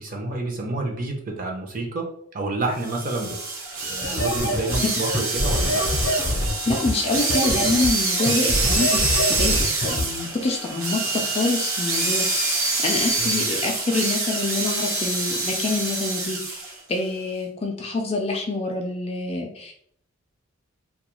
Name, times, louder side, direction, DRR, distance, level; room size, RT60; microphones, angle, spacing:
voice 1, 0.0-2.1 2.3-3.4 3.8-6.0 13.2-13.4, right 2 dB, 40° right, 1 dB, 0.5 m, -29 dB
sound 1, 2.8-16.7, right 3 dB, 70° right, 0.7 m, -26 dB
sound 2, 4.0-10.0, left 1 dB, 65° left, 0.6 m, -25 dB
voice 2, 6.7-19.7, left 2 dB, 30° left, 2 dB, 0.3 m, -26 dB
2.3 x 2.2 x 2.9 m, 0.64 s
head